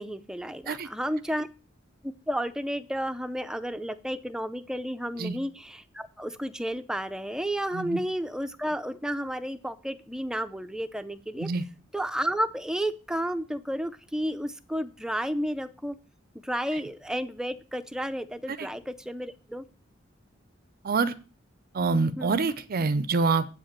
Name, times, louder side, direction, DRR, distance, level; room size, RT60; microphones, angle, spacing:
voice 1, 0.0-1.5 2.0-11.5 11.9-16.0 16.4-19.6 22.2-22.4, equal, 5° right, 10 dB, 0.5 m, -32 dB
voice 2, 20.8-21.1 21.7-23.5, right 4 dB, 50° right, 15 dB, 0.5 m, -26 dB
8.1 x 5.1 x 7.2 m, 0.36 s
head